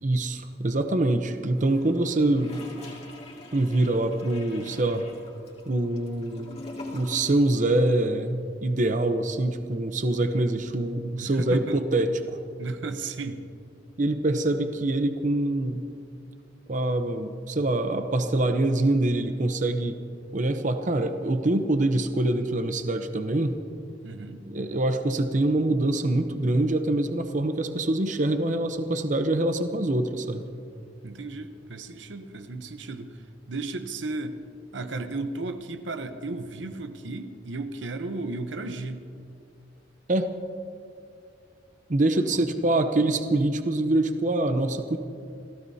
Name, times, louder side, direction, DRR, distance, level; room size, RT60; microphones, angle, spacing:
voice 1, 0.0-2.6 3.5-5.0 5.7-6.6 6.9-12.4 14.0-15.8 16.7-20.0 20.3-23.6 24.5-30.4 40.1-40.3 41.9-45.0, right 2 dB, 45° right, 8 dB, 0.8 m, -25 dB
Gurgling / Toilet flush, 1.5-7.6 7.9-8.0, left 2 dB, 35° left, 2.4 m, -44 dB
voice 2, 11.2-11.8 12.6-13.4 24.0-24.5 31.0-33.2 33.5-34.4 34.7-39.0 42.1-42.4, right 3 dB, 90° right, 8 dB, 0.9 m, -34 dB
29.0 x 15.5 x 2.8 m, 2.5 s
head